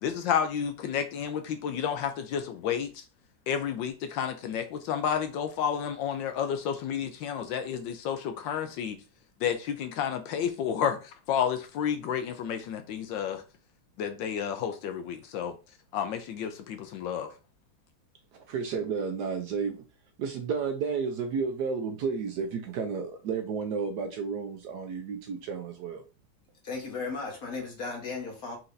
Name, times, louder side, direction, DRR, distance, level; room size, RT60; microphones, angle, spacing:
voice 1, 0.0-3.0 3.5-9.0 9.4-13.4 14.0-15.5 15.9-17.3, left 8 dB, 75° left, 1.2 m, -31 dB
voice 2, 18.3-19.8 20.2-26.0, right 5 dB, 70° right, 1.1 m, -32 dB
voice 3, 26.6-28.6, left 4 dB, 50° left, 1.6 m, -35 dB
4.3 x 3.9 x 2.6 m
omnidirectional pair, 2.2 m